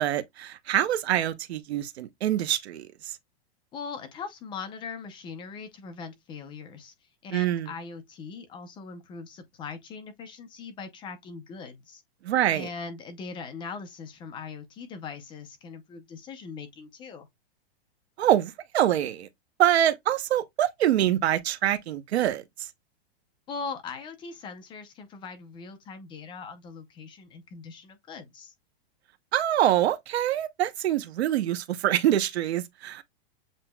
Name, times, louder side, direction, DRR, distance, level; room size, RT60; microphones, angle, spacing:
voice 1, 0.0-3.1 7.3-7.7 12.2-12.7 18.2-19.3 19.6-22.7 29.3-33.0, right 12 dB, 85° right, 0.8 m, -25 dB
voice 2, 3.7-6.9 7.2-12.0 12.5-17.3 23.5-28.5, left 5 dB, 15° left, 0.6 m, -40 dB
7.5 x 2.9 x 2.2 m
supercardioid pair, 160°, 31 cm